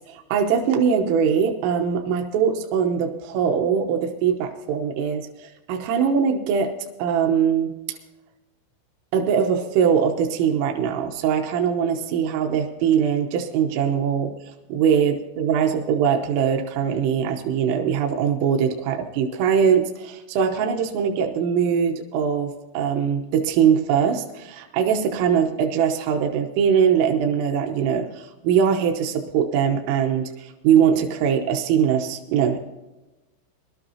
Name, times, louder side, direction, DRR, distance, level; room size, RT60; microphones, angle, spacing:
voice 1, 0.1-6.7 7.0-8.0 9.1-14.3 14.7-32.7, right 7 dB, 80° right, 4 dB, 3.5 m, -22 dB
21.5 x 12.5 x 2.8 m, 1.1 s
omnidirectional pair, 5.8 m